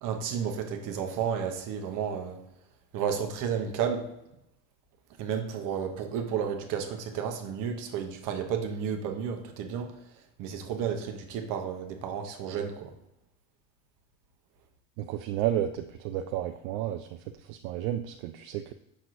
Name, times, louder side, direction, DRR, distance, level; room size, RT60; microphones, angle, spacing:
voice 1, 0.0-2.4 2.9-4.1 5.2-9.9 10.4-12.9, right 7 dB, 50° right, 5 dB, 0.9 m, -32 dB
voice 2, 15.0-18.7, right 11 dB, 80° right, 6 dB, 0.5 m, -32 dB
6.1 x 6.0 x 2.6 m, 0.84 s
cardioid pair, 140°, 39 cm